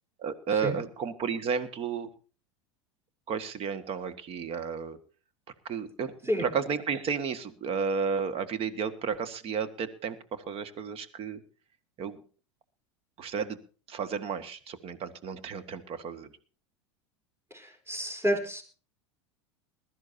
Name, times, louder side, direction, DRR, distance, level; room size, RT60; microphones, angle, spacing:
voice 1, 0.2-2.1 3.3-5.0 5.7-6.1 6.4-11.4 12.0-12.2 13.2-13.6 13.9-16.3, right 6 dB, 40° right, 12 dB, 1.8 m, -32 dB
voice 2, 17.5-18.6, equal, 15° right, 4 dB, 4.0 m, -29 dB
21.5 x 13.0 x 2.8 m, 0.37 s
hypercardioid pair, 85°, 15 cm